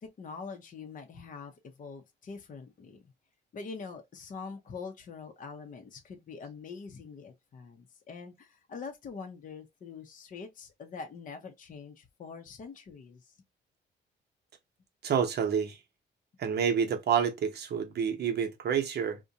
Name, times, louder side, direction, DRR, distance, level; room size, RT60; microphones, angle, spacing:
voice 1, 0.0-3.0 3.5-13.3, left 5 dB, 40° left, 0.6 m, -44 dB
voice 2, 15.0-15.8 16.4-19.2, right 7 dB, 55° right, 0.7 m, -28 dB
2.5 x 2.1 x 2.7 m
cardioid pair, 90°, 20 cm